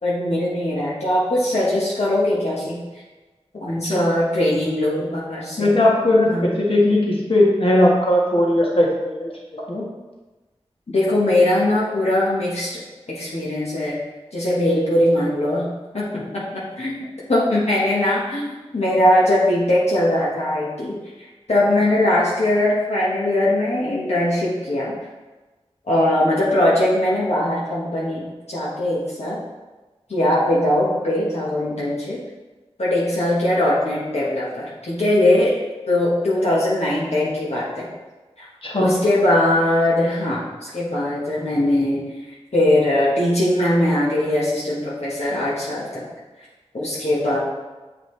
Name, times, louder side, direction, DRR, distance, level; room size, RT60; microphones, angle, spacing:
voice 1, 0.0-2.8 3.6-5.8 6.3-6.5 10.9-12.8 13.1-14.0 14.3-15.7 15.9-16.1 16.3-21.0 21.5-24.9 25.9-28.2 28.5-29.4 30.1-32.2 32.8-35.6 35.9-37.9 38.4-38.5 38.8-42.1 42.5-46.1 46.7-47.4, left 1 dB, 75° left, -7 dB, 1.3 m, -20 dB
voice 2, 5.6-6.3 6.5-9.8 38.6-38.9, left 1 dB, 55° left, -3 dB, 1.5 m, -18 dB
7.3 x 5.0 x 3.3 m, 1.2 s
wide cardioid pair, 45°, 11 cm